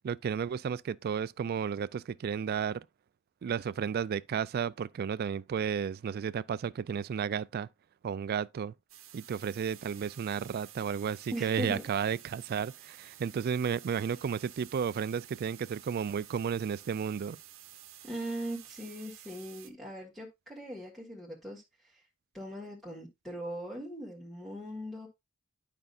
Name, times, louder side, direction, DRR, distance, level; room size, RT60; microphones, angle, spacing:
voice 1, 0.0-2.8 3.4-7.7 8.0-8.7 9.1-17.4, right 7 dB, 50° right, 0.3 m, -33 dB
sound 1, 8.9-19.7, right 12 dB, 75° right, 0.8 m, -52 dB
voice 2, 11.3-11.8 18.0-22.0 22.3-25.1, right 1 dB, ahead, 1.6 m, -40 dB
11.0 x 5.3 x 2.4 m
head